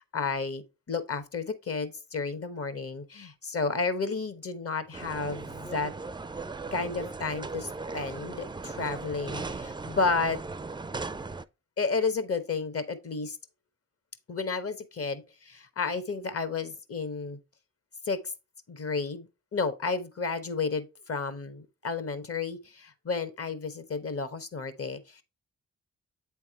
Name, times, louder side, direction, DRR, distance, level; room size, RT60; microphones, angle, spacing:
voice 1, 0.1-0.6 0.9-5.9 6.7-10.4 11.8-13.4 14.3-17.4 18.1-18.2 18.7-25.2, left 4 dB, 50° left, 1.1 m, -32 dB
sound 1, 4.9-11.4, right 3 dB, 15° right, 0.4 m, -38 dB
8.2 x 3.5 x 4.4 m
supercardioid pair, 50°, 31 cm